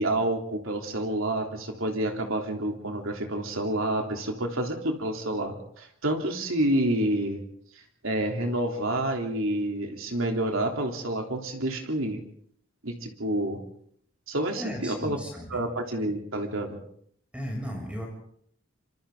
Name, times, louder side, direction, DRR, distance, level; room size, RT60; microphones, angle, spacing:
voice 1, 0.0-7.4 8.0-12.2 12.8-13.6 14.3-15.2 15.5-16.8, right 1 dB, 75° right, 3 dB, 3.4 m, -28 dB
voice 2, 14.6-15.6 17.3-18.1, equal, 5° right, 1 dB, 6.9 m, -35 dB
26.0 x 26.0 x 3.9 m, 0.65 s
head